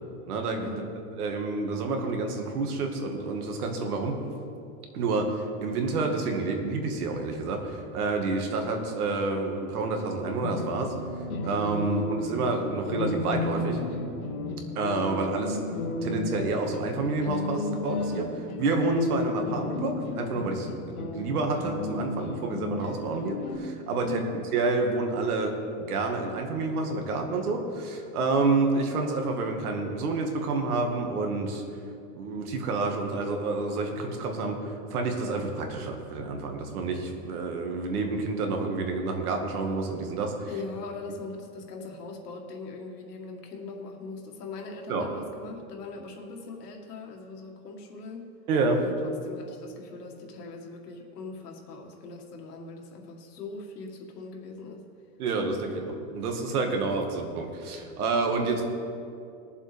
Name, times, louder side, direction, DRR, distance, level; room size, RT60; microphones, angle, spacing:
voice 1, 0.3-0.7 1.2-4.2 4.9-10.9 11.4-13.8 14.8-20.7 21.0-24.2 24.5-25.5 25.8-31.6 32.1-40.5 44.9-45.1 48.5-48.8 55.2-58.6, right 3 dB, 70° right, 3 dB, 1.9 m, -29 dB
sound 1, 10.2-23.6, left 3 dB, 65° left, 2.0 m, -33 dB
voice 2, 40.5-48.3 48.8-54.8, left 4 dB, 85° left, 1 dB, 2.1 m, -40 dB
20.0 x 7.4 x 3.5 m, 2.5 s
supercardioid pair, 170°, 47 cm